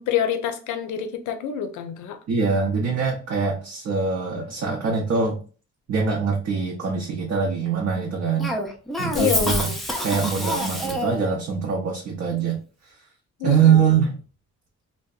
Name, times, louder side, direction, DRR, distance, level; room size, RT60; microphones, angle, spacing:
voice 1, 0.0-2.2 9.1-9.8 13.4-13.8, left 9 dB, 75° left, 0.5 m, -26 dB
voice 2, 2.3-5.4 5.9-8.5 9.0-9.7 10.0-12.6 13.4-14.2, right 6 dB, 55° right, 0.7 m, -23 dB
Cough, 8.4-11.3, equal, ahead, 0.4 m, -27 dB
2.6 x 2.1 x 2.3 m
cardioid pair, 90°, 30 cm